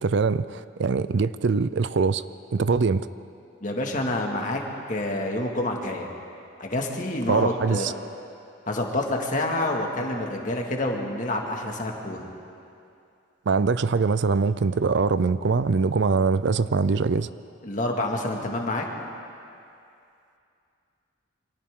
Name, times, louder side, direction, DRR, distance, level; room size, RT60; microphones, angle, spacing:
voice 1, 0.0-2.2 2.5-3.1 7.3-7.9 13.5-17.3, right 4 dB, 60° right, 15 dB, 0.4 m, -23 dB
voice 2, 3.6-4.6 4.9-6.1 6.6-7.9 8.7-12.3 17.6-18.9, left 1 dB, 40° left, 1 dB, 2.1 m, -28 dB
28.5 x 24.5 x 3.8 m, 2.6 s
head